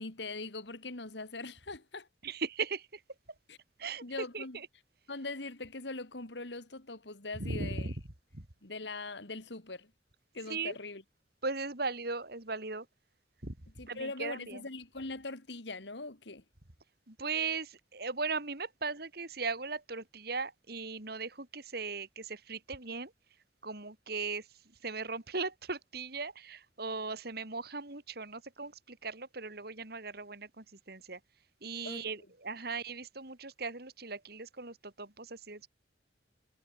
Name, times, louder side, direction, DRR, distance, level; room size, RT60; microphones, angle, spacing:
voice 1, 0.0-2.1 3.5-3.6 4.0-4.6 5.1-7.9 8.6-9.9 10.3-11.0 13.8-16.4 31.8-32.1, left 3 dB, 70° left, 2.4 m, -41 dB
voice 2, 2.2-3.0 3.8-4.7 7.4-7.9 8.3-8.5 10.5-10.7 11.4-12.9 13.4-13.6 13.9-14.7 17.1-23.1 23.6-31.2 31.6-35.7, right 4 dB, 60° right, 3.1 m, -38 dB
head